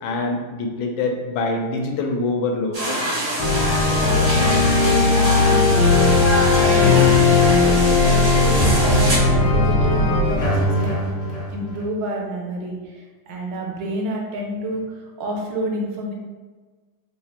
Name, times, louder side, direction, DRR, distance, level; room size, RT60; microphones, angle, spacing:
voice 1, 0.0-2.8, left 3 dB, 80° left, 3 dB, 1.3 m, -24 dB
sound 1, 2.7-9.2, right 1 dB, 55° right, 0.4 m, -25 dB
sound 2, 3.4-10.4, left 3 dB, 65° left, 1.1 m, -17 dB
voice 2, 3.9-11.2 11.5-16.1, right 1 dB, 75° right, 0 dB, 1.3 m, -29 dB
sound 3, 6.8-11.8, equal, 50° left, 0.7 m, -24 dB
3.4 x 2.4 x 4.2 m, 1.3 s
omnidirectional pair, 2.1 m